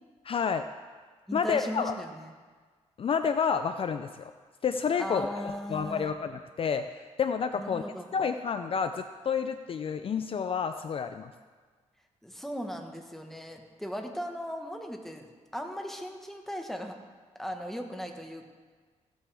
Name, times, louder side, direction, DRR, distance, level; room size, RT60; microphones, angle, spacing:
voice 1, 0.2-0.7 1.3-2.0 3.0-4.3 4.6-7.8 8.1-11.3, left 6 dB, 45° left, 9 dB, 0.4 m, -30 dB
voice 2, 1.3-2.3 5.0-6.1 7.5-8.1 12.2-15.3 15.5-17.0 17.3-18.5, equal, ahead, 3 dB, 1.3 m, -37 dB
15.5 x 8.9 x 3.4 m, 1.5 s
cardioid pair, 100°, 13 cm